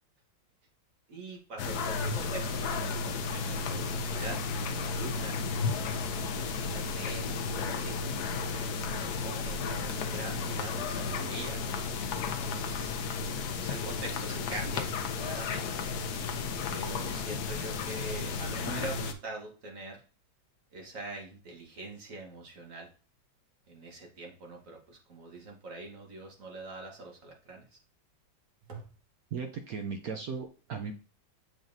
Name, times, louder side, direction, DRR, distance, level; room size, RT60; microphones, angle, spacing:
voice 1, 1.1-12.2 12.4-13.0 13.6-14.9 15.2-15.9 16.7-20.0 20.7-22.9 23.7-27.7 28.7-28.9, right 2 dB, 45° right, 1 dB, 1.5 m, -44 dB
sound 1, 1.6-19.1, left 4 dB, 65° left, 1.1 m, -33 dB
voice 2, 29.3-30.9, right 5 dB, 70° right, 5 dB, 0.9 m, -37 dB
7.4 x 5.0 x 2.7 m, 0.37 s
omnidirectional pair, 2.2 m